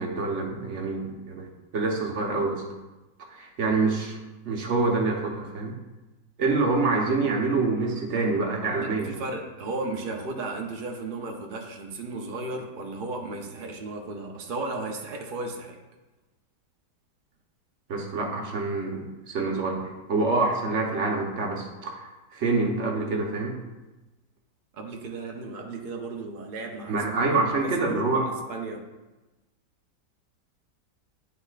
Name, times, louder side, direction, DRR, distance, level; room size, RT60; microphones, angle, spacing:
voice 1, 0.0-1.5 1.7-2.6 3.3-4.2 4.4-5.7 6.4-9.2 17.9-23.5 26.9-28.3, right 3 dB, 50° right, 0 dB, 1.0 m, -26 dB
voice 2, 8.8-15.8 24.7-27.4 27.6-28.9, right 3 dB, 80° right, 1 dB, 0.4 m, -35 dB
10.5 x 4.2 x 2.4 m, 1.1 s
omnidirectional pair, 1.9 m